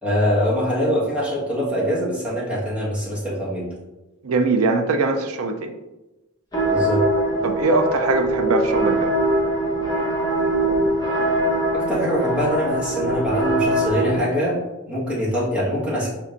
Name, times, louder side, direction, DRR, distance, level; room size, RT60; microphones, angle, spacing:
voice 1, 0.0-3.7 6.7-7.0 11.7-14.6 14.9-16.1, equal, 5° right, -7 dB, 1.5 m, -23 dB
voice 2, 4.2-5.7 7.4-9.1, right 3 dB, 90° right, 6 dB, 0.5 m, -21 dB
sound 1, 6.5-14.2, right 1 dB, 20° left, 1.1 m, -22 dB
5.3 x 3.5 x 2.6 m, 1.0 s
head